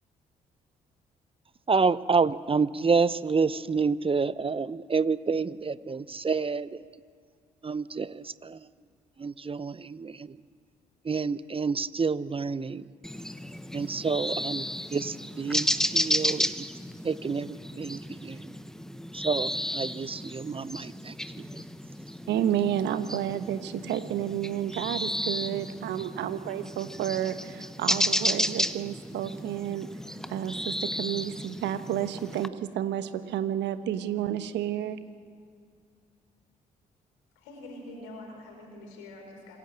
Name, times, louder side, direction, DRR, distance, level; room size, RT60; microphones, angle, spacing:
voice 1, 1.7-6.8 7.6-8.7 9.2-10.4 11.0-12.9 13.7-16.6 17.0-18.5 19.1-21.6, right 4 dB, 30° right, 17 dB, 0.8 m, -29 dB
sound 1, 13.0-32.5, equal, 5° left, 1.2 m, -33 dB
voice 2, 22.3-29.9 30.3-35.0, right 11 dB, 70° right, 11 dB, 1.3 m, -31 dB
voice 3, 37.3-39.6, left 1 dB, 80° left, 2 dB, 5.1 m, -45 dB
26.5 x 17.5 x 7.6 m, 2.2 s
hypercardioid pair, 40°, 19 cm